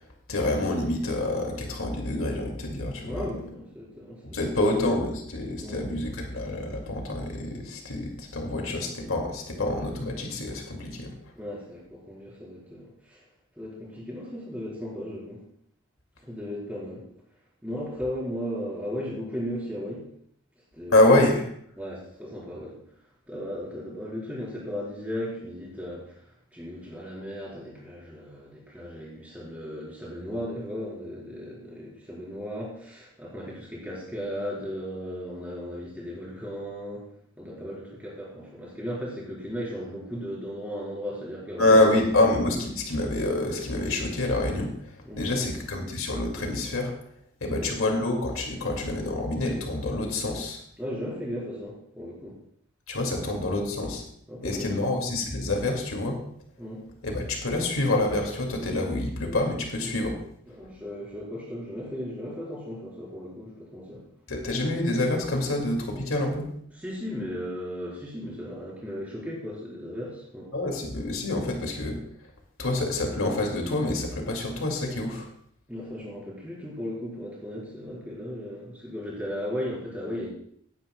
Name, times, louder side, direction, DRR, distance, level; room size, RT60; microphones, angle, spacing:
voice 1, 0.3-3.3 4.3-11.1 20.9-21.5 41.6-44.9 45.2-46.9 47.4-50.6 52.9-54.0 54.4-56.2 57.0-60.2 64.3-66.5 70.5-72.0 72.6-75.3, left 2 dB, 90° left, 1 dB, 2.3 m, -26 dB
voice 2, 3.0-4.7 5.6-5.8 11.3-13.2 13.5-15.4 16.2-17.0 17.6-20.1 20.7-21.0 21.8-22.8 23.3-26.2 26.5-37.0 37.4-42.0 45.0-45.5 47.6-47.8 50.8-52.4 53.1-53.3 54.3-54.9 56.6-56.9 60.5-64.0 66.7-70.5 75.7-80.3, equal, 5° right, -6 dB, 4.4 m, -36 dB
18.0 x 9.8 x 2.3 m, 0.67 s
head